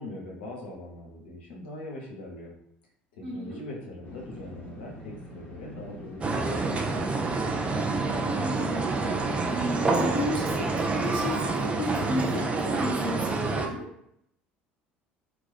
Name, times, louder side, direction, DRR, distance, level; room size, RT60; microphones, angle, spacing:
voice 1, 0.0-2.5 3.2-7.1, left 1 dB, 75° left, -2 dB, 0.7 m, -41 dB
voice 2, 3.2-3.6 8.2-9.0 9.5-13.9, equal, 80° right, -3 dB, 0.9 m, -33 dB
sound 1, 4.0-9.7, left 1 dB, 35° left, 0.8 m, -44 dB
sound 2, 6.2-13.7, right 3 dB, 20° right, 0.4 m, -27 dB
2.3 x 2.2 x 2.4 m, 0.72 s
hypercardioid pair, 65°, 5 cm